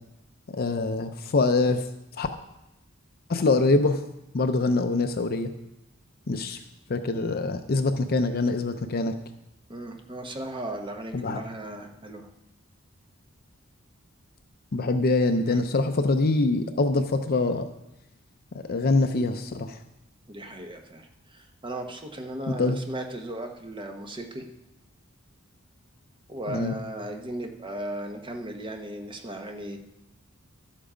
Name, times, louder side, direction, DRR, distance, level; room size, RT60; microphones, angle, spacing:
voice 1, 0.5-1.9 2.2-2.3 3.3-4.0 4.3-5.5 6.3-6.6 6.9-9.1 11.1-11.4 14.7-17.7 18.5-19.8 22.5-22.8 26.5-26.7, left 3 dB, 45° left, 8 dB, 0.6 m, -24 dB
voice 2, 9.7-12.3 15.5-15.6 20.3-24.4 26.3-29.8, right 1 dB, 25° right, 4 dB, 1.0 m, -36 dB
11.5 x 7.4 x 5.0 m, 0.89 s
head